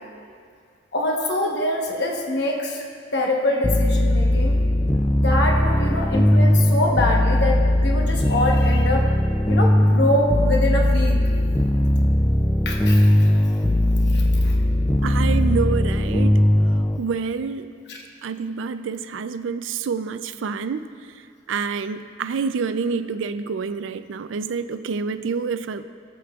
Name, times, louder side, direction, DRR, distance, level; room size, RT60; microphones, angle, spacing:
voice 1, 0.9-2.8 3.1-4.6 5.2-9.1 9.5-11.2 12.6-13.3 14.1-14.6 17.9-18.0, left 1 dB, 55° left, 0 dB, 1.0 m, -24 dB
sound 1, 3.6-17.0, left 1 dB, 10° left, 0.4 m, -19 dB
voice 2, 15.0-16.5 17.0-17.7 18.2-20.9 21.5-25.8, right 5 dB, 75° right, 12 dB, 0.4 m, -27 dB
16.0 x 8.3 x 2.4 m, 2.2 s
head